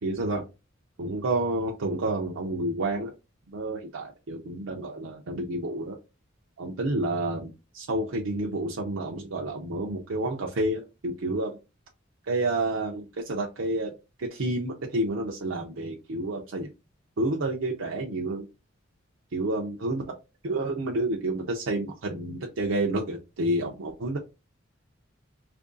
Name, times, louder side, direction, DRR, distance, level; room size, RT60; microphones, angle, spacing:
voice 1, 0.0-0.4 1.0-3.1 3.5-6.0 6.6-11.6 12.3-13.9 14.2-16.7 17.2-18.5 19.3-20.0 20.4-24.2, right 2 dB, 75° right, 0 dB, 0.6 m, -29 dB
2.9 x 2.6 x 3.7 m, 0.26 s
head